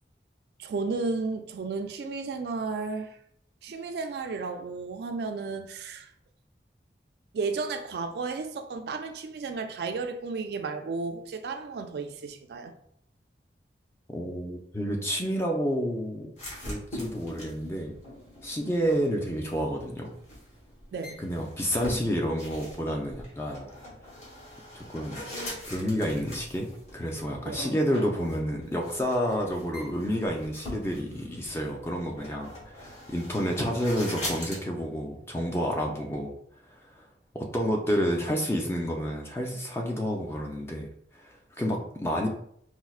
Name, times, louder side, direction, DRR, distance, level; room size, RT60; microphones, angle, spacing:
voice 1, 0.6-3.2 3.6-6.1 7.3-12.7 20.9-21.2 27.5-27.6, right 4 dB, 65° right, 0.3 m, -33 dB
voice 2, 14.1-16.3 16.6-17.9 18.4-20.1 21.2-23.7 24.7-25.2 25.7-36.3 36.7-37.1 37.3-40.9 41.1-42.3, equal, 15° left, 0.4 m, -30 dB
sound 1, 16.4-34.6, left 1 dB, 40° left, 1.1 m, -42 dB
4.3 x 2.0 x 2.3 m
head